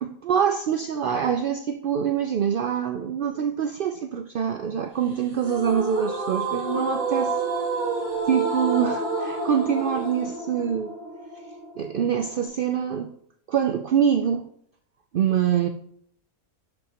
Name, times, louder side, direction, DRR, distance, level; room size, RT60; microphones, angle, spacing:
voice 1, 0.0-7.4 8.3-10.9 11.8-13.1 13.5-14.5 15.1-15.7, right 8 dB, 85° right, 6 dB, 0.4 m, -25 dB
sound 1, 5.4-12.5, right 3 dB, 35° right, 2.4 m, -29 dB
11.5 x 5.4 x 2.9 m, 0.66 s
omnidirectional pair, 1.5 m